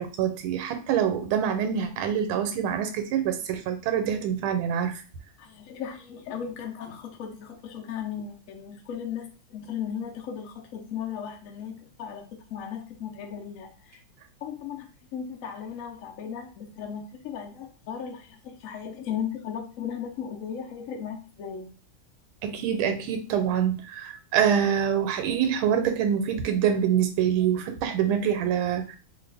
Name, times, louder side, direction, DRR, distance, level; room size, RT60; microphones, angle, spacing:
voice 1, 0.0-5.0 22.4-29.0, right 8 dB, 85° right, 7 dB, 1.4 m, -25 dB
voice 2, 5.4-14.0 14.4-21.7, left 8 dB, 70° left, 2 dB, 0.8 m, -36 dB
3.1 x 2.4 x 3.3 m, 0.36 s
omnidirectional pair, 2.2 m